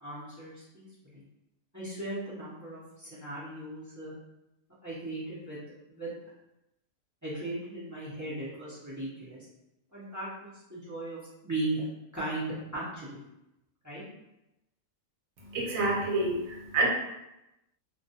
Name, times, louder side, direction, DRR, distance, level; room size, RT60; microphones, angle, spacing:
voice 1, 0.0-1.2 1.7-4.1 4.8-5.6 5.9-6.1 7.2-9.4 9.9-11.8 12.1-13.2 13.8-14.0, right 2 dB, 20° right, -9 dB, 0.5 m, -37 dB
voice 2, 15.4-16.9, right 2 dB, 80° right, -3 dB, 1.1 m, -28 dB
2.3 x 2.2 x 2.7 m, 0.91 s
omnidirectional pair, 1.4 m